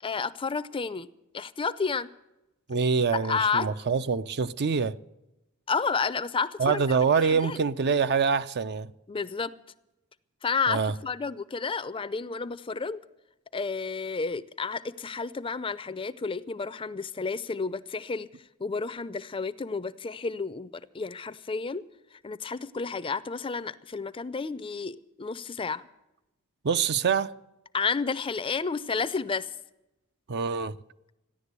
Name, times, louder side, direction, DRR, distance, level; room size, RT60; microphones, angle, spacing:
voice 1, 0.0-1.1 1.3-2.1 3.1-3.7 5.7-6.8 7.2-7.6 9.1-9.5 10.4-13.0 13.5-18.3 18.6-21.8 22.2-25.9 27.7-29.5, left 4 dB, 25° left, 0.5 m, -31 dB
voice 2, 2.7-5.0 6.6-8.9 10.7-11.0 26.6-27.3 30.3-30.8, right 5 dB, 50° right, 0.5 m, -25 dB
15.0 x 10.5 x 8.1 m
head